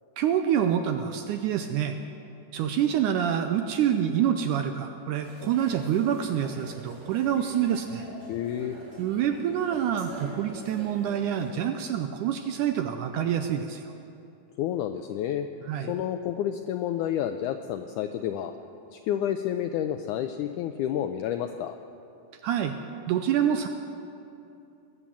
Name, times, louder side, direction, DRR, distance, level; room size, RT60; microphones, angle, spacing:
voice 1, 0.2-2.0 2.5-8.1 9.0-13.8 15.7-15.9 22.4-22.8 23.1-23.7, right 9 dB, 85° right, 7 dB, 1.9 m, -26 dB
sound 1, 5.2-11.5, right 1 dB, 65° right, 5.0 m, -45 dB
voice 2, 8.3-8.7 14.6-15.5 15.9-18.5 18.9-21.8, left 10 dB, 90° left, 8 dB, 1.7 m, -30 dB
21.0 x 8.3 x 7.3 m, 2.7 s
omnidirectional pair, 4.1 m